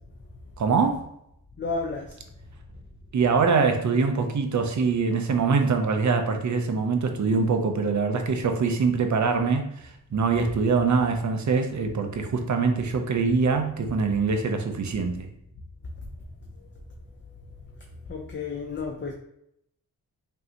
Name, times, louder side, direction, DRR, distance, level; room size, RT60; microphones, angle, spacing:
voice 1, 0.6-1.1 3.1-15.3, right 5 dB, 50° right, 5 dB, 0.6 m, -24 dB
voice 2, 1.6-2.2 16.5-16.8 17.4-19.1, left 4 dB, 30° left, 1 dB, 0.5 m, -33 dB
5.4 x 2.6 x 2.8 m, 0.76 s
wide cardioid pair, 165°, 37 cm